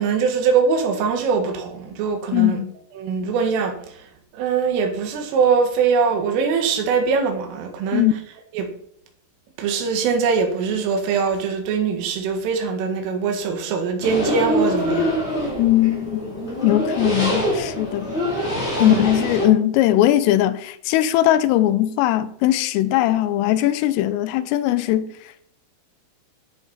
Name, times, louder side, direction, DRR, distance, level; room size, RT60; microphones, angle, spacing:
voice 1, 0.0-2.6 3.0-3.8 4.3-8.1 8.5-8.7 9.6-15.1 18.8-19.1, right 5 dB, 75° right, 4.2 m, -22 dB
voice 2, 2.3-2.7 7.9-8.1 15.6-18.2 18.8-25.1, left 13 dB, 85° left, 3.3 m, -19 dB
sound 1, 14.0-19.5, equal, 15° left, 3.3 m, -24 dB
13.5 x 7.2 x 5.6 m
omnidirectional pair, 5.9 m